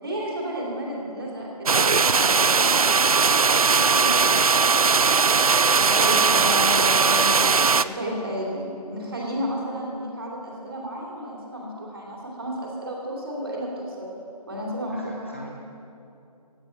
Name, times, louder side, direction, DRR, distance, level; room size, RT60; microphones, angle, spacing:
voice 1, 0.0-2.5 5.8-7.3 7.8-14.1 14.5-15.3, equal, 35° right, -3 dB, 3.3 m, -32 dB
sound 1, 1.7-7.8, right 5 dB, 60° right, 0.4 m, -19 dB
voice 2, 3.7-4.3 14.9-15.5, equal, 20° left, -1 dB, 0.6 m, -37 dB
16.5 x 9.7 x 5.9 m, 2.7 s
figure-of-eight pair, 180°, 21 cm